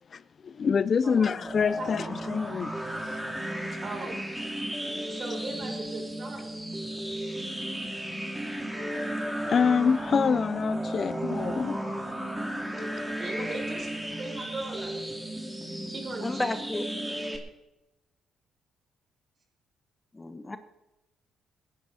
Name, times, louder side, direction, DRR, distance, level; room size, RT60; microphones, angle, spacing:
voice 1, 0.1-2.7 3.0-3.3 9.5-11.8, left 6 dB, 45° left, 0.4 m, -26 dB
voice 2, 1.0-1.3 1.8-2.1 3.8-4.2 5.1-6.5 13.2-13.9 14.2-14.9 15.9-16.5, right 3 dB, 45° right, 6.1 m, -38 dB
sound 1, 1.4-17.4, right 1 dB, 5° right, 2.7 m, -34 dB
voice 3, 16.2-16.8 20.1-20.6, left 2 dB, 20° left, 1.0 m, -32 dB
20.5 x 10.5 x 4.2 m
cardioid pair, 90°, 0 cm